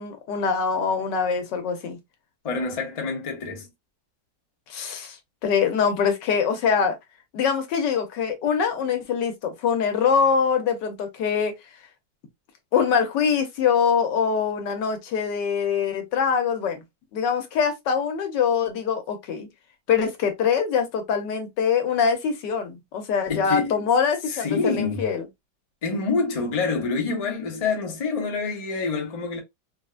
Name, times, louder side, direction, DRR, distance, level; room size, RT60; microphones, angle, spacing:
voice 1, 0.0-2.0 4.7-5.2 5.4-6.9 7.3-11.5 12.7-16.8 17.1-19.5 19.9-25.2, left 6 dB, 75° left, 1.4 m, -23 dB
voice 2, 2.4-3.7 23.3-23.8 24.3-25.1 25.8-29.4, left 4 dB, 55° left, 0.4 m, -27 dB
3.8 x 2.1 x 2.3 m
omnidirectional pair, 1.9 m